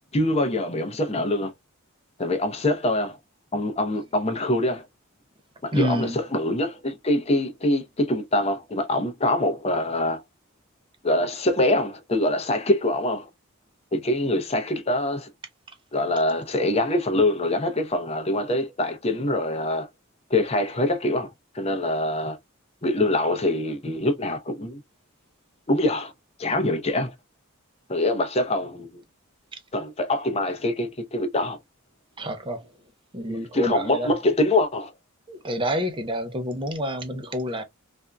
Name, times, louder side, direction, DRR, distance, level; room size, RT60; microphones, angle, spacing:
voice 1, 0.1-1.5 2.2-3.2 3.5-4.8 5.6-10.2 11.0-13.3 13.9-15.3 15.9-19.9 20.3-22.4 22.8-24.8 25.7-26.1 26.4-27.1 27.9-28.9 29.7-31.6 33.3-34.9, left 1 dB, 30° left, 0.7 m, -24 dB
voice 2, 5.7-6.2 32.2-32.6 33.1-34.1 35.3-37.6, equal, 25° right, 0.7 m, -28 dB
3.5 x 2.6 x 2.2 m
head